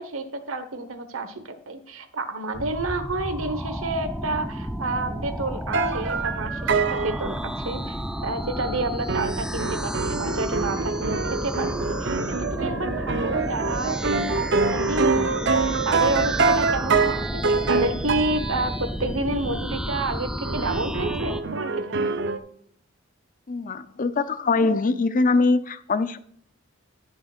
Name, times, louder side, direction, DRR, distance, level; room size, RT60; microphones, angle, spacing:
voice 1, 0.0-22.1, right 2 dB, 85° right, 8 dB, 1.2 m, -30 dB
sound 1, 2.5-21.4, equal, 5° right, 0.4 m, -31 dB
sound 2, 5.7-7.2 9.1-18.7 20.4-22.4, right 4 dB, 60° right, 0.8 m, -25 dB
voice 2, 23.5-26.2, left 3 dB, 40° left, 13 dB, 0.6 m, -22 dB
15.0 x 6.6 x 2.5 m, 0.64 s
head